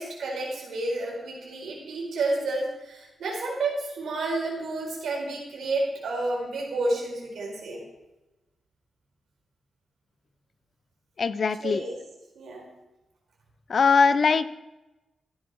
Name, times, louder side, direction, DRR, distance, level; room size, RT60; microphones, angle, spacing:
voice 1, 0.0-7.8 11.5-12.0 12.3-12.6, right 2 dB, 80° right, -2 dB, 4.6 m, -30 dB
voice 2, 11.2-11.8 13.7-14.5, left 5 dB, 50° left, 15 dB, 0.6 m, -21 dB
14.5 x 10.0 x 4.7 m, 1.0 s
cardioid pair, 105°, 0 cm